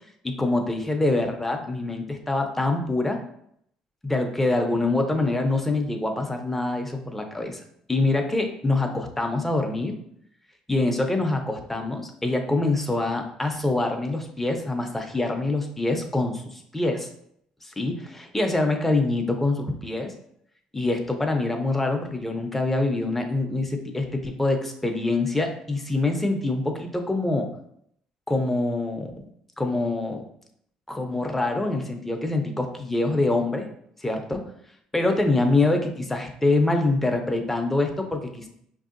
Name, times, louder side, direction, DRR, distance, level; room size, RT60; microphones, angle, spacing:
voice 1, 0.2-3.2 4.0-7.6 7.9-9.9 10.7-17.1 17.6-20.1 20.7-27.5 28.3-29.1 29.6-30.2 30.9-33.7 34.0-34.4 34.9-38.5, left 2 dB, 10° left, 3 dB, 0.6 m, -25 dB
5.3 x 2.7 x 2.5 m, 0.70 s
cardioid pair, 115°, 2 cm